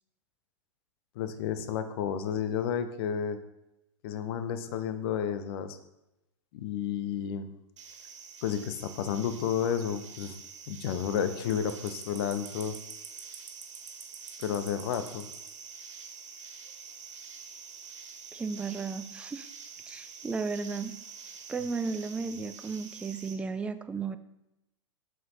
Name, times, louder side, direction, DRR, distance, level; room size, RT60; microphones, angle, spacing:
voice 1, 1.1-3.4 4.0-5.8 6.5-7.5 8.4-10.4 10.7-12.7 14.4-15.3, left 8 dB, 50° left, 10 dB, 0.8 m, -31 dB
sound 1, 7.8-23.3, right 6 dB, 70° right, 1.7 m, -46 dB
voice 2, 18.3-19.5 19.9-20.9 21.5-24.2, right 4 dB, 5° right, 11 dB, 0.4 m, -34 dB
7.6 x 5.1 x 4.1 m, 0.91 s
hypercardioid pair, 105°, 16 cm